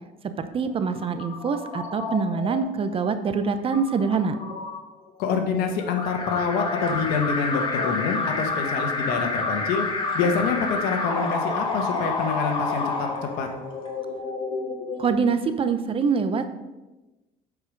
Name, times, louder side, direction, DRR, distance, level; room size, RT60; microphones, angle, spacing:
voice 1, 0.2-4.4 15.0-16.5, right 5 dB, 35° right, 9 dB, 0.7 m, -25 dB
sound 1, 0.6-15.1, left 3 dB, 50° left, 1.8 m, -38 dB
voice 2, 5.2-9.9 10.1-13.1 13.4-13.5, left 5 dB, 75° left, 5 dB, 1.3 m, -26 dB
Alarm, 6.0-13.9, left 3 dB, 30° left, 1.8 m, -28 dB
8.3 x 5.0 x 5.2 m, 1.1 s
cardioid pair, 105°, 16 cm